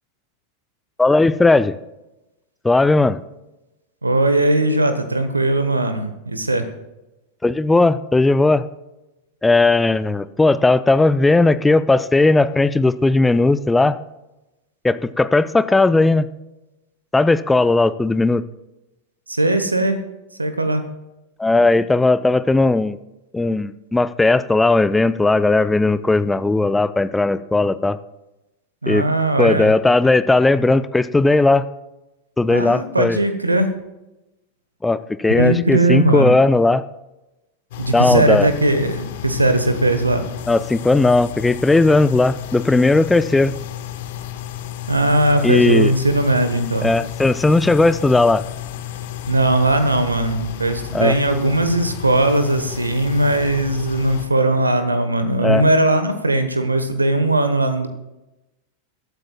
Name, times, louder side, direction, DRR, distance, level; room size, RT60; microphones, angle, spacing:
voice 1, 1.0-1.8 2.6-3.2 7.4-8.7 9.4-14.0 14.8-16.3 17.1-18.4 21.4-23.0 23.3-28.0 28.9-29.1 29.4-31.6 32.4-33.2 34.8-36.8 37.9-38.5 40.5-43.5 45.4-45.9 46.8-48.4 50.9-51.2 55.4-55.6, left 2 dB, 10° left, 14 dB, 0.5 m, -16 dB
voice 2, 4.0-6.7 19.3-20.0 20.4-20.8 28.8-29.7 32.5-33.7 35.3-36.3 37.8-40.2 44.9-46.9 49.3-57.9, right 1 dB, 80° right, 9 dB, 1.1 m, -19 dB
sound 1, 37.7-54.3, left 12 dB, 55° left, 1.2 m, -32 dB
21.5 x 13.0 x 2.4 m, 0.97 s
figure-of-eight pair, 90°, 0 cm